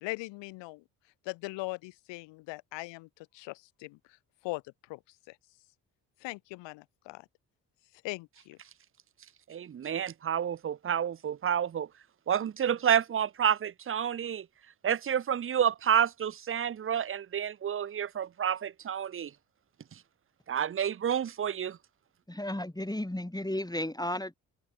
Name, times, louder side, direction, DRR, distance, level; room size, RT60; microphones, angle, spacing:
voice 1, 0.0-0.8 1.2-4.0 4.4-4.6 4.9-5.0 5.3-5.4 6.2-7.2 8.0-8.6, left 22 dB, 65° left, 1.0 m, -40 dB
voice 2, 9.5-11.9 12.3-14.5 14.8-19.3 20.5-21.8, right 9 dB, 25° right, 0.7 m, -29 dB
voice 3, 22.3-24.3, left 1 dB, 10° left, 6.6 m, -33 dB
open air
figure-of-eight pair, 40°, 47 cm